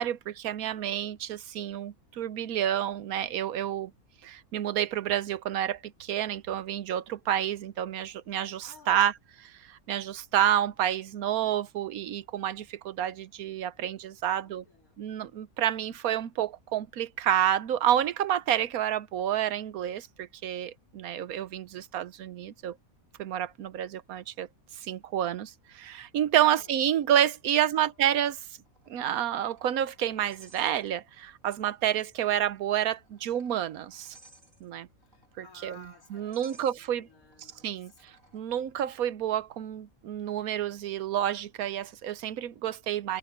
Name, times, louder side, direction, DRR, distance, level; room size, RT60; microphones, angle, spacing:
voice 1, 0.0-3.9 4.2-14.6 15.0-22.8 23.2-24.5 24.8-28.4 28.9-34.1 34.6-34.9 35.4-35.8 36.1-37.1 37.6-43.2, right 11 dB, 85° right, 1.2 m, -29 dB
voice 2, 8.7-9.0 13.7-13.8 14.3-15.0 26.4-26.7 27.5-27.9 35.1-38.0, left 1 dB, 85° left, 2.9 m, -55 dB
sound 1, 28.7-31.3 31.6-31.7 32.6-38.4, right 3 dB, 65° right, 6.8 m, -60 dB
omnidirectional pair, 1.5 m